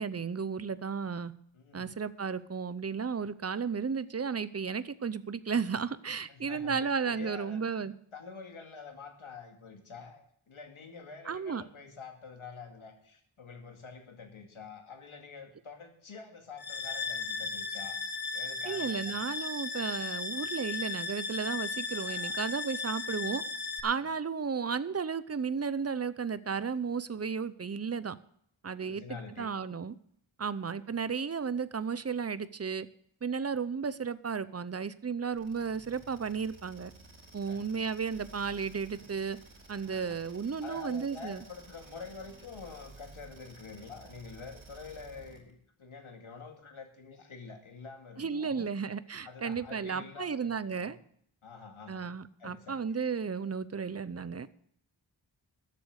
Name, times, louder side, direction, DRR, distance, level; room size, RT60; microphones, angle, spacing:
voice 1, 0.0-1.3 1.7-7.9 11.3-11.6 18.7-23.4 23.8-28.1 28.6-29.0 29.4-30.0 30.4-32.9 33.2-36.9 37.3-39.4 39.7-41.4 48.2-51.0 51.9-54.5, right 6 dB, 30° right, 15 dB, 0.7 m, -34 dB
voice 2, 1.5-2.0 6.3-18.0 18.3-19.2 21.9-22.4 28.8-29.5 30.4-30.5 37.5-37.6 39.9-40.2 40.6-48.7 49.2-51.0 51.4-52.1 52.4-52.8, left 5 dB, 90° left, 3 dB, 2.3 m, -47 dB
sound 1, 16.6-23.8, left 4 dB, 50° left, 1.5 m, -36 dB
sound 2, 35.3-45.5, right 3 dB, 70° right, 3.7 m, -54 dB
13.0 x 8.5 x 6.4 m, 0.66 s
wide cardioid pair, 100°, 48 cm